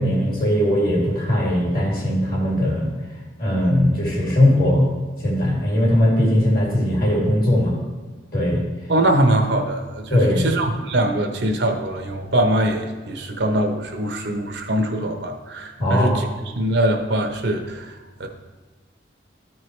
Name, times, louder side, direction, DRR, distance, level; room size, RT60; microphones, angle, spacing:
voice 1, 0.0-2.9 3.4-4.9 5.2-7.7 8.3-8.6 10.1-10.5 15.8-16.3, left 1 dB, 50° left, -3 dB, 2.5 m, -19 dB
voice 2, 8.9-16.3 16.5-17.9 18.2-18.3, right 1 dB, 70° right, 4 dB, 0.9 m, -22 dB
13.0 x 4.6 x 3.2 m, 1.3 s
head